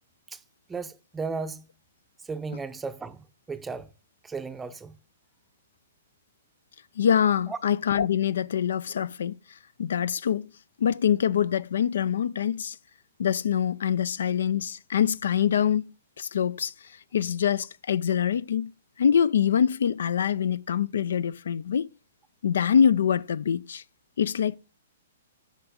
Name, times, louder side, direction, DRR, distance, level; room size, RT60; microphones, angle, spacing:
voice 1, 0.7-1.7 2.2-3.9 4.2-5.0 7.5-7.6, right 4 dB, 10° right, 0.6 m, -35 dB
voice 2, 7.0-9.4 9.8-10.5 10.8-12.8 13.2-15.8 16.2-16.7 17.1-18.7 19.0-21.9 22.4-23.8 24.2-24.6, left 8 dB, 70° left, 0.3 m, -24 dB
8.2 x 6.1 x 5.0 m
hypercardioid pair, 125°, 0 cm